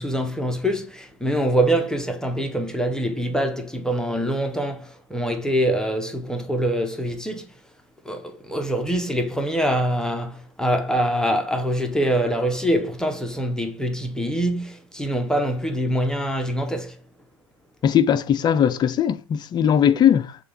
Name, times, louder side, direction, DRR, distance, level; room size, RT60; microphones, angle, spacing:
voice 1, 0.0-7.5 8.0-17.0, right 1 dB, 5° left, 0.8 m, -24 dB
voice 2, 17.8-20.4, left 9 dB, 25° left, 0.4 m, -19 dB
6.7 x 2.4 x 3.3 m
hypercardioid pair, 85°, 16 cm